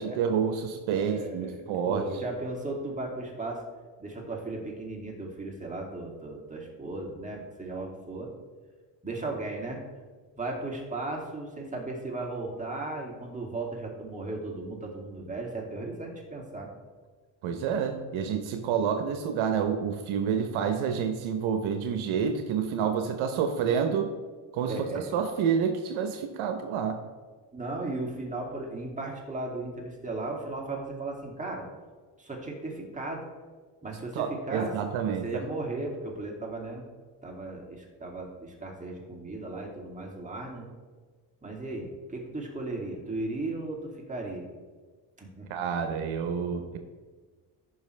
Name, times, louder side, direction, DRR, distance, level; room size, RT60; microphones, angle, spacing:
voice 1, 0.0-2.1 17.4-24.1 24.5-27.0 34.1-35.2 45.5-46.8, right 7 dB, 75° right, 6 dB, 1.0 m, -28 dB
voice 2, 0.9-3.6 4.0-8.3 9.0-9.8 10.4-16.7 24.7-25.2 27.5-31.7 32.2-33.2 33.8-34.8 35.1-36.8 37.2-40.7 41.4-44.5 45.2-45.5, right 2 dB, 15° right, -1 dB, 2.5 m, -36 dB
14.5 x 5.6 x 3.3 m, 1.4 s
supercardioid pair, 80°, 49 cm